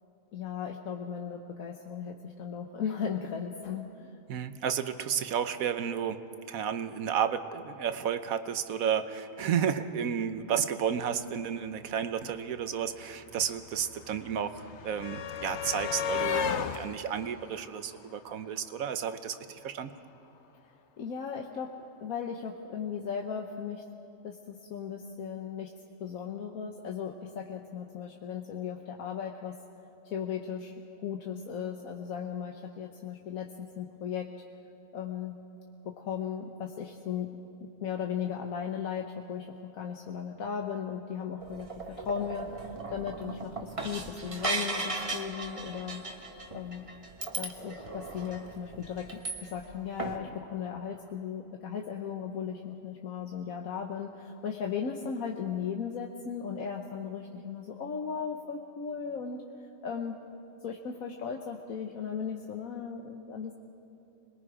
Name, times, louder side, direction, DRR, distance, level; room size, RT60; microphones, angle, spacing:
voice 1, 0.3-4.2 21.0-21.7 22.0-23.8 24.2-25.7 26.0-29.6 30.0-34.3 34.9-35.4 35.8-37.3 37.6-46.0 46.5-46.9 47.3-59.4 59.8-60.2 60.6-63.5, left 7 dB, 80° left, 1 dB, 1.4 m, -36 dB
voice 2, 4.3-16.5 16.7-19.9, right 8 dB, 80° right, 10 dB, 1.3 m, -32 dB
sound 1, 12.2-12.3 12.5-18.7 19.9-20.0 20.3-20.4, left 7 dB, 60° left, 1.0 m, -35 dB
sound 2, 41.4-49.7 50.0-50.2, right 3 dB, 25° right, 1.2 m, -37 dB
27.0 x 21.0 x 4.9 m, 2.9 s
omnidirectional pair, 1.4 m